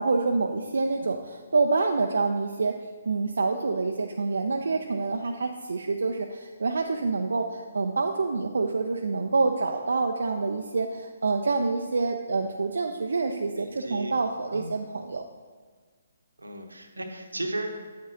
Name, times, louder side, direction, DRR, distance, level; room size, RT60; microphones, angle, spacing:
voice 1, 0.0-2.7 3.1-15.2, right 3 dB, 65° right, 4 dB, 0.5 m, -27 dB
voice 2, 13.6-14.1 14.5-14.7 16.4-17.8, right 1 dB, 85° right, 4 dB, 1.0 m, -35 dB
8.9 x 7.7 x 2.8 m, 1.5 s
figure-of-eight pair, 135°, 0 cm